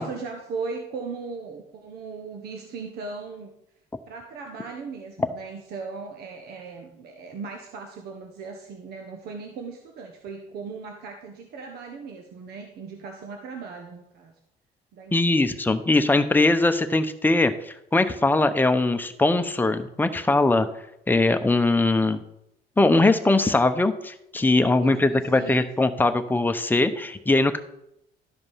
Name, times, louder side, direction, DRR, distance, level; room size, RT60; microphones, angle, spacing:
voice 1, 0.0-3.5 4.1-14.3 14.9-15.4 24.7-25.7, right 4 dB, 70° right, 3 dB, 1.2 m, -38 dB
voice 2, 15.1-20.7 21.1-22.2 22.8-27.6, left 2 dB, 10° left, 8 dB, 0.8 m, -21 dB
12.5 x 5.1 x 5.6 m, 0.80 s
cardioid pair, 110°, 17 cm